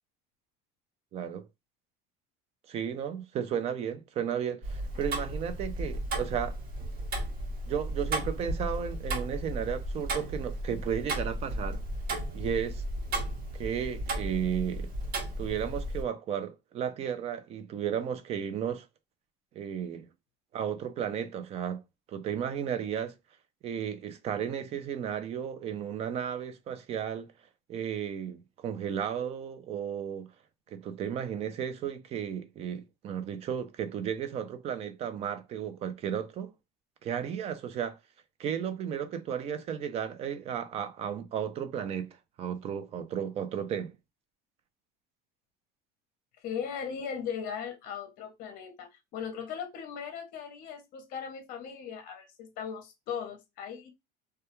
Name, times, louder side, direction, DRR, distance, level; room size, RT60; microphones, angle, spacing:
voice 1, 1.1-1.5 2.7-6.6 7.7-11.8 12.3-12.8 13.5-14.9 15.4-18.9 19.6-20.1 20.5-21.8 22.1-23.1 23.6-27.3 27.7-30.3 30.7-36.5 37.0-38.0 38.4-42.1 42.4-43.9, right 8 dB, 35° right, 0.4 m, -34 dB
Tick-tock, 4.6-16.0, right 1 dB, 50° right, 1.0 m, -34 dB
voice 2, 46.4-53.9, left 7 dB, 45° left, 0.7 m, -38 dB
2.2 x 2.2 x 2.9 m
cardioid pair, 155°, 20 cm